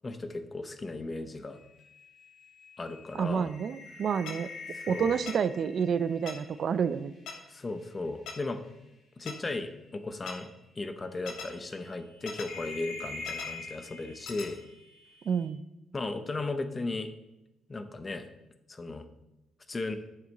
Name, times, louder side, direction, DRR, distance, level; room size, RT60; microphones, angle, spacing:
voice 1, 0.0-1.6 2.8-3.5 4.7-5.1 7.5-8.6 9.2-10.5 10.8-14.6 15.9-17.1 17.7-18.3 18.7-19.1 19.7-20.0, left 3 dB, 30° left, 9 dB, 0.8 m, -36 dB
sound 1, 1.6-7.9 8.2-8.7 9.8-10.0 10.4-10.5 11.4-15.5, left 3 dB, 65° left, 2.4 m, -45 dB
voice 2, 3.1-4.5 4.9-7.1 15.3-15.6, right 7 dB, 55° right, 15 dB, 0.4 m, -29 dB
sound 2, 4.3-4.4 5.3-5.4 6.3-6.4 7.3-7.4 8.3-8.4 9.3-9.4 10.3-10.4 11.3-11.5 12.3-12.5 13.3-13.5 14.3-14.5, left 6 dB, 80° left, 1.2 m, -39 dB
9.1 x 6.9 x 4.1 m, 0.94 s
cardioid pair, 90°, 0 cm